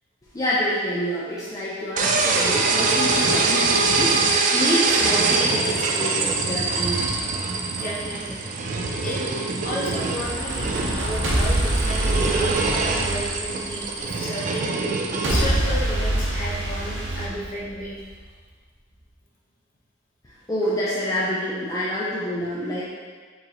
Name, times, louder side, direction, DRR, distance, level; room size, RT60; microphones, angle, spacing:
voice 1, 0.3-7.2 20.2-22.9, equal, 20° left, -8 dB, 0.5 m, -27 dB
sound 1, 2.0-15.4, right 3 dB, 40° right, 0.3 m, -23 dB
voice 2, 7.7-8.4 9.0-9.2 9.6-14.7 15.2-18.1, equal, 45° left, -6 dB, 1.0 m, -32 dB
sound 2, 10.0-14.1 15.2-18.1, right 1 dB, 70° right, 0.8 m, -25 dB
4.4 x 3.2 x 2.9 m, 1.5 s
head